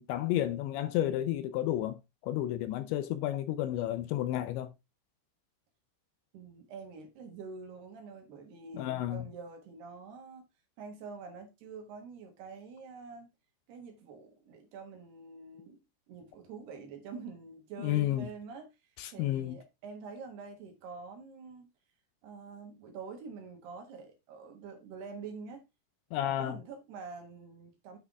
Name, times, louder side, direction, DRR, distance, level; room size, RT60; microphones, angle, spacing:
voice 1, 0.0-4.7 8.7-9.3 17.8-18.3 19.0-19.6 26.1-26.6, left 13 dB, 80° left, 2.7 m, -31 dB
voice 2, 6.3-10.5 10.8-13.3 13.7-15.8 16.1-21.7 22.2-25.6 26.2-28.0, right 5 dB, 65° right, 2.9 m, -46 dB
9.7 x 6.0 x 3.5 m
omnidirectional pair, 5.9 m